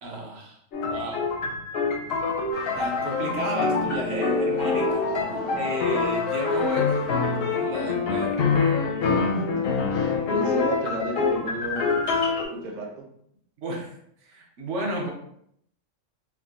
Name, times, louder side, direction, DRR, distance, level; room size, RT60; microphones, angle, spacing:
voice 1, 0.0-1.2 2.7-5.1 5.6-7.0 7.5-8.8 13.6-13.9 14.2-15.1, right 1 dB, 70° right, 0 dB, 1.0 m, -32 dB
sound 1, 0.7-12.5, left 4 dB, 65° left, 0.6 m, -26 dB
sound 2, 2.5-9.4, left 3 dB, 80° left, 1.1 m, -32 dB
voice 2, 5.3-5.7 9.3-11.8 12.5-13.0, right 2 dB, 55° right, 0 dB, 0.5 m, -33 dB
3.5 x 2.2 x 2.3 m, 0.71 s
omnidirectional pair, 1.3 m